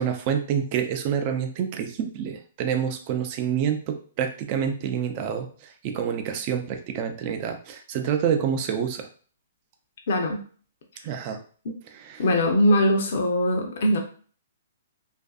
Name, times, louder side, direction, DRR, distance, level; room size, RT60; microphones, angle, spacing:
voice 1, 0.0-5.5 5.8-9.1 11.0-11.4 12.0-12.2, right 8 dB, 40° right, 6 dB, 0.4 m, -27 dB
voice 2, 10.1-10.4 11.6-11.7 12.2-14.0, left 1 dB, 60° left, 2 dB, 0.6 m, -21 dB
2.5 x 2.5 x 2.3 m, 0.42 s
hypercardioid pair, 140°, 0 cm